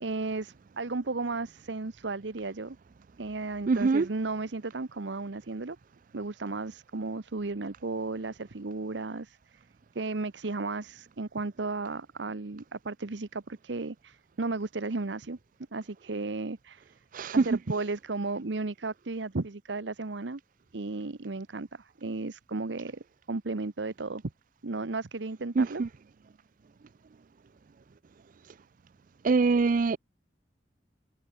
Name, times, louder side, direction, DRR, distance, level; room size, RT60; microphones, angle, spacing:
voice 1, 0.0-2.8 3.2-5.8 6.1-9.6 9.9-15.4 15.7-16.9 17.3-20.4 20.7-23.0 23.3-24.2 24.6-25.8, right 3 dB, 80° right, 0.9 m, -34 dB
voice 2, 3.7-4.1 17.1-17.4 25.6-25.9 29.2-30.0, right 4 dB, 45° right, 0.4 m, -23 dB
head